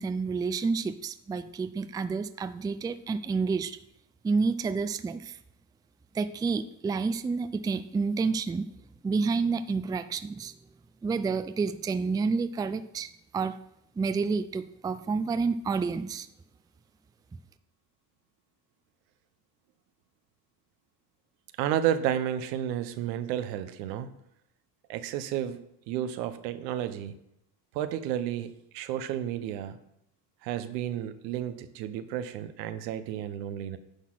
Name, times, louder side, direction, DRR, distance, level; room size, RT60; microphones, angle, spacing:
voice 1, 0.0-3.8 4.2-5.4 6.1-8.7 9.0-10.5 11.0-13.6 14.0-16.3, right 4 dB, 10° right, 12 dB, 0.3 m, -29 dB
voice 2, 21.6-24.1 24.9-27.1 27.7-29.8 30.4-33.8, right 10 dB, 90° right, 11 dB, 0.9 m, -32 dB
9.9 x 4.0 x 6.3 m, 0.79 s
supercardioid pair, 80°, 48 cm